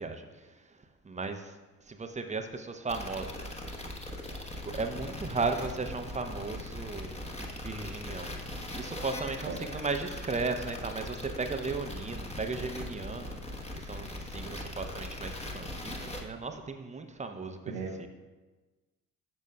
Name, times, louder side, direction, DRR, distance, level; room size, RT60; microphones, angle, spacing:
voice 1, 0.0-1.5 1.9-3.8 4.6-8.4 8.7-13.4 13.7-17.7 18.0-18.1, right 3 dB, 15° right, 6 dB, 0.7 m, -36 dB
sound 1, 2.9-16.2, left 1 dB, 15° left, 1.1 m, -40 dB
voice 2, 17.7-18.1, right 5 dB, 65° right, 0 dB, 0.8 m, -37 dB
11.0 x 6.4 x 2.2 m, 1.2 s
figure-of-eight pair, 45°, 45 cm